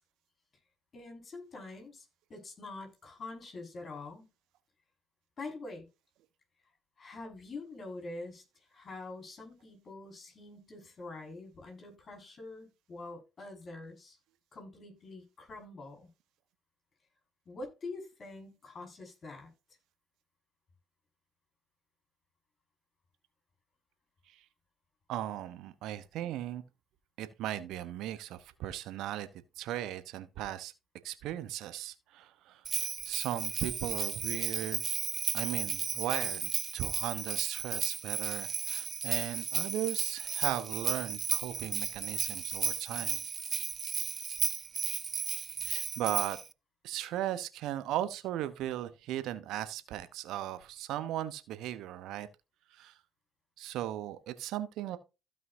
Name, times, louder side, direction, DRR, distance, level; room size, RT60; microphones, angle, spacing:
voice 1, 0.9-4.3 5.4-5.9 7.0-8.4 8.7-14.2 14.5-16.1 17.5-19.5, left 3 dB, 40° left, 5.6 m, -45 dB
voice 2, 25.1-26.6 27.2-29.3 29.6-30.7 31.0-34.8 35.3-43.2 45.6-46.4 46.8-52.3 52.7-52.9 53.6-55.0, right 13 dB, 65° right, 1.0 m, -37 dB
Bell, 32.6-46.5, right 6 dB, 40° right, 0.5 m, -34 dB
15.5 x 5.5 x 2.8 m
hypercardioid pair, 55°, 0 cm